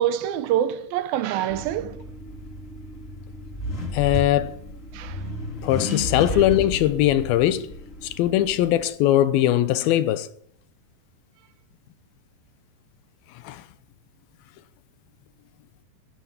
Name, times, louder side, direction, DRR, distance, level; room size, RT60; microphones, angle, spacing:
voice 1, 0.0-2.0 4.9-5.2, right 11 dB, 80° right, 2.7 m, -25 dB
Accelerating revving vroom, 1.5-8.8, left 1 dB, 20° left, 2.9 m, -33 dB
voice 2, 3.9-4.6 5.6-7.7 8.0-10.3 13.4-13.6, left 13 dB, 85° left, 2.6 m, -21 dB
14.0 x 10.0 x 7.3 m
omnidirectional pair, 4.3 m